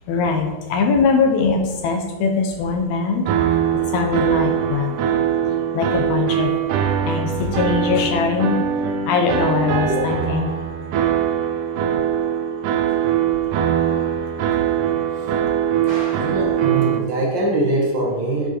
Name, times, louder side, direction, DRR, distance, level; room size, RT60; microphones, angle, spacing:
voice 1, 0.1-3.3 3.7-5.0 5.7-6.5 7.1-8.6 9.1-10.6 13.6-13.7, left 4 dB, 80° left, 4 dB, 1.8 m, -21 dB
sound 1, 3.3-17.0, right 9 dB, 85° right, 2.2 m, -22 dB
voice 2, 15.8-18.5, right 2 dB, 65° right, -2 dB, 1.1 m, -23 dB
7.9 x 6.0 x 2.9 m, 1.2 s
omnidirectional pair, 3.7 m